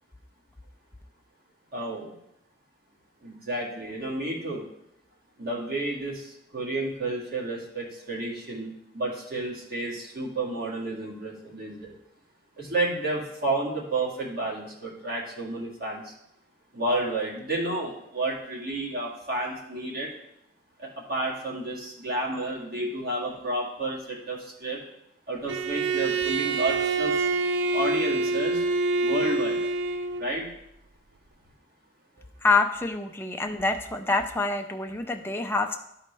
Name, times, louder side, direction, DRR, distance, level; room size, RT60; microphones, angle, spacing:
voice 1, 1.7-2.2 3.2-4.6 5.4-11.9 12.6-16.1 16.7-20.1 20.8-24.8 25.3-27.3 27.7-28.6 29.0-29.6 30.2-30.5, right 2 dB, 50° right, -4 dB, 1.9 m, -31 dB
Bowed string instrument, 25.5-30.3, right 3 dB, 70° right, 0.4 m, -26 dB
voice 2, 32.4-35.8, left 3 dB, 10° left, 4 dB, 0.4 m, -26 dB
12.0 x 4.1 x 3.3 m, 0.77 s
head